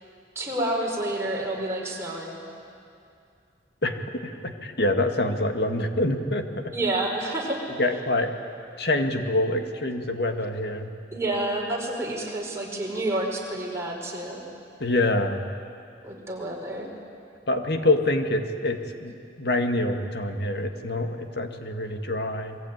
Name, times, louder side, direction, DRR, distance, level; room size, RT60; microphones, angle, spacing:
voice 1, 0.4-2.4 6.7-7.6 11.1-14.4 16.0-16.9, right 1 dB, 15° right, -2 dB, 5.3 m, -29 dB
voice 2, 3.8-6.7 7.8-8.3 8.8-10.9 14.8-15.5 17.5-22.6, left 2 dB, 65° left, 5 dB, 2.0 m, -26 dB
28.0 x 22.0 x 9.5 m, 2.4 s
head